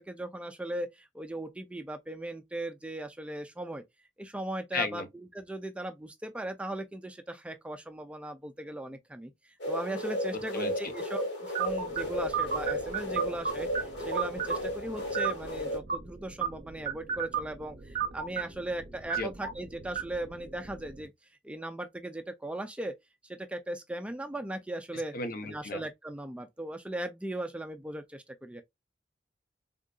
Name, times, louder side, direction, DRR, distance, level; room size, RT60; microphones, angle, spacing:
voice 1, 0.0-3.8 4.2-9.3 9.7-21.1 21.4-22.9 23.2-25.1 25.4-28.6, right 1 dB, 5° right, 0.3 m, -38 dB
voice 2, 4.7-5.1 10.5-10.7 19.2-19.3 25.1-25.8, left 3 dB, 55° left, 0.7 m, -33 dB
sound 1, 9.6-15.8, equal, 70° left, 1.6 m, -34 dB
sound 2, 11.6-21.1, right 7 dB, 50° right, 0.7 m, -36 dB
3.6 x 2.6 x 2.2 m
head